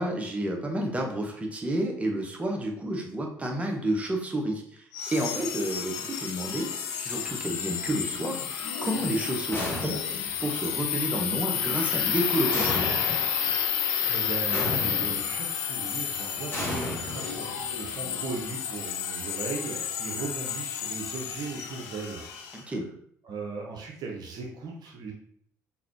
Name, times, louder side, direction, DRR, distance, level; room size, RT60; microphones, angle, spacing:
voice 1, 0.0-8.4 8.8-10.0 10.4-12.9 22.5-22.9, right 1 dB, 15° right, 1 dB, 1.0 m, -30 dB
sound 1, 4.9-22.6, left 8 dB, 65° left, 0.5 m, -31 dB
sound 2, 9.5-10.3 12.5-13.3 14.5-15.3 16.5-17.7, left 1 dB, 25° left, 1.7 m, -33 dB
voice 2, 14.1-22.8 23.2-25.1, right 4 dB, 45° right, -1 dB, 0.8 m, -38 dB
4.0 x 3.7 x 2.9 m, 0.66 s
figure-of-eight pair, 50°, 9 cm